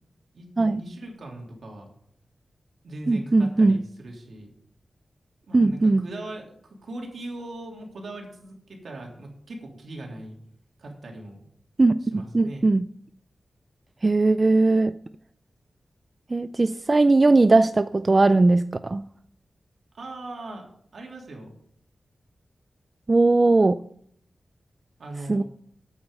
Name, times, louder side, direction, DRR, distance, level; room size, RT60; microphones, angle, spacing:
voice 1, 0.3-1.9 2.8-4.5 5.5-10.4 10.8-11.4 12.0-12.6 20.0-20.6 20.9-21.5 25.0-25.4, right 2 dB, 75° right, 3.3 m, -39 dB
voice 2, 3.1-3.8 5.5-6.1 11.8-12.9 14.0-14.9 16.3-19.0 23.1-23.8 25.3-25.4, right 3 dB, 35° right, 0.4 m, -19 dB
8.8 x 8.6 x 6.9 m
wide cardioid pair, 85°, 0 cm